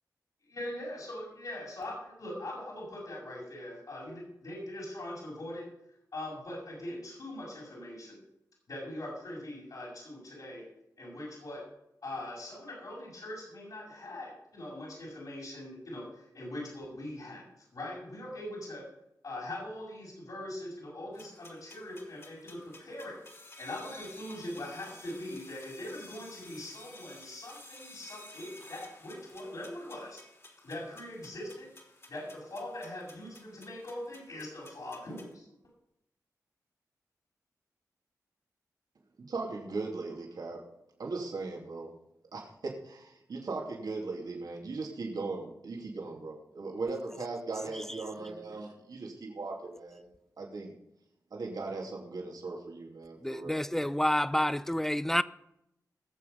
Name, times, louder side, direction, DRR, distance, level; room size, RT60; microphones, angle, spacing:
voice 1, 0.4-5.6 6.1-8.2 8.7-10.6 11.0-11.6 12.0-17.4 17.7-18.8 19.2-23.1 23.6-30.2 30.6-31.7 32.1-35.4, left 1 dB, 70° left, 6.5 m, -41 dB
sound 1, 21.1-35.3, left 2 dB, 40° left, 3.1 m, -53 dB
voice 2, 39.2-40.6 41.0-41.9 42.3-50.0 50.4-50.7 51.3-53.6, right 3 dB, 75° right, 2.8 m, -38 dB
voice 3, 53.2-55.2, left 1 dB, 5° left, 0.6 m, -28 dB
19.5 x 7.4 x 5.5 m
wide cardioid pair, 75°, 7 cm